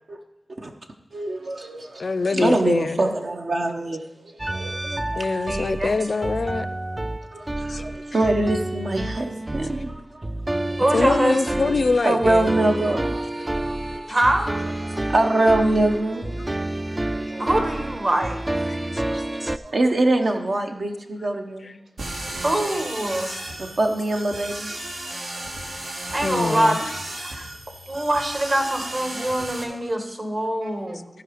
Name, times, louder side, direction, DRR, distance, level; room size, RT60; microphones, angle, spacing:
voice 1, 1.1-5.6 7.3-10.3 10.7-11.0 12.0-14.2 14.8-16.8 17.1-17.5 18.8-21.8 23.6-26.1 26.5-26.7 27.9-28.0 29.7-29.8 30.6-31.0, right 2 dB, 60° right, 0.8 m, -25 dB
voice 2, 2.0-3.0 5.2-6.7 7.7-7.8 10.9-12.5 18.7-19.2 23.3-23.4 26.2-26.8, left 3 dB, 60° left, 0.4 m, -24 dB
sound 1, 4.4-19.6, right 1 dB, 25° right, 0.3 m, -29 dB
voice 3, 5.5-5.9 10.8-11.7 14.1-14.5 17.4-18.7 19.4-19.5 22.4-23.3 26.1-26.8 27.2-27.5 27.9-31.1, right 1 dB, 45° right, 1.7 m, -24 dB
sound 2, 22.0-29.6, right 1 dB, 80° right, 1.5 m, -34 dB
14.5 x 4.9 x 5.0 m
wide cardioid pair, 70°, 0 cm